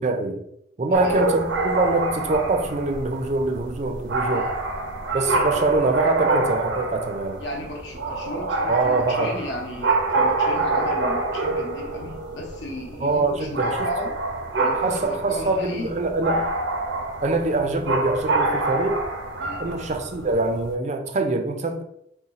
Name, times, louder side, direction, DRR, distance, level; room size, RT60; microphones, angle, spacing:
voice 1, 0.0-0.4 0.8-4.5 5.1-7.4 8.7-9.4 13.0-13.8 14.8-16.5 17.2-19.0 19.6-21.8, right 2 dB, 40° right, 0.4 m, -24 dB
voice 2, 0.9-1.3 4.3-4.5 7.4-14.2 14.6-15.9 19.4-19.6, left 1 dB, 75° left, 0.9 m, -34 dB
sound 1, 0.9-20.7, right 2 dB, 85° right, 0.7 m, -27 dB
4.0 x 2.3 x 4.0 m
head